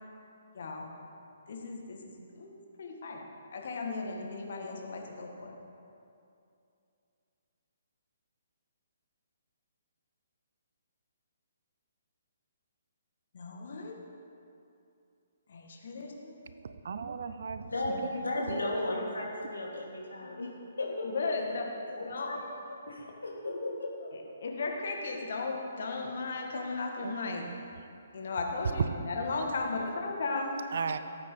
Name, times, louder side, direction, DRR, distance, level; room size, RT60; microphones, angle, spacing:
voice 1, 0.5-0.9 1.5-2.5 2.8-3.2 3.5-5.6 13.3-14.0 15.5-16.4 18.2-18.3 20.2-20.3 21.0-21.7 22.0-22.3 22.9-23.0 24.1-27.4 28.1-30.6, left 3 dB, 55° left, 1 dB, 1.9 m, -36 dB
voice 2, 16.6-18.0 18.5-18.6 27.0-27.6 30.7-31.0, right 5 dB, 55° right, 11 dB, 0.6 m, -37 dB
voice 3, 17.6-20.5 20.8-21.1 21.9-22.4 22.9-24.1, left 2 dB, 75° left, -3 dB, 3.2 m, -35 dB
17.5 x 8.9 x 4.0 m, 2.6 s
figure-of-eight pair, 130°, 0 cm